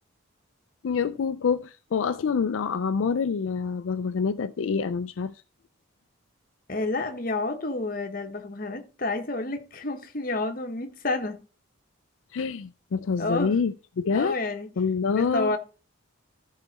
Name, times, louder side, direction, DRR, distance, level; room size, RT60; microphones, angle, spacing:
voice 1, 0.8-5.3 12.3-14.4 14.8-15.5, left 5 dB, 75° left, 0.4 m, -26 dB
voice 2, 6.7-11.4 13.2-13.5 14.1-14.7 15.1-15.6, left 2 dB, 45° left, 1.1 m, -29 dB
13.5 x 4.7 x 4.1 m
head